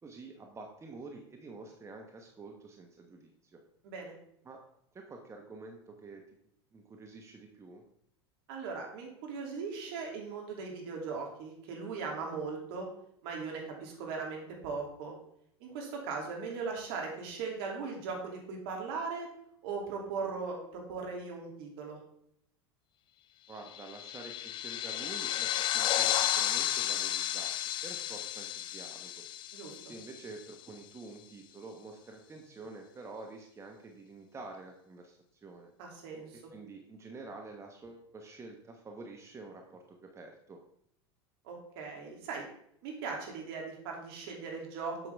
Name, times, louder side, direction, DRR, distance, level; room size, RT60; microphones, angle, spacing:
voice 1, 0.0-3.6 4.4-4.6 4.9-6.2 6.7-7.8 23.5-27.5 27.8-29.2 29.8-35.7 36.5-40.6, right 3 dB, 20° right, 3 dB, 1.1 m, -48 dB
voice 2, 8.5-12.9 13.2-15.2 15.6-19.3 19.6-22.0 29.5-29.7 35.8-36.4 41.4-42.5 42.8-45.1, right 4 dB, 60° right, 0 dB, 2.8 m, -39 dB
sound 1, 23.7-30.5, left 12 dB, 35° left, 0.4 m, -33 dB
7.7 x 6.9 x 3.5 m, 0.70 s
hypercardioid pair, 90°, 14 cm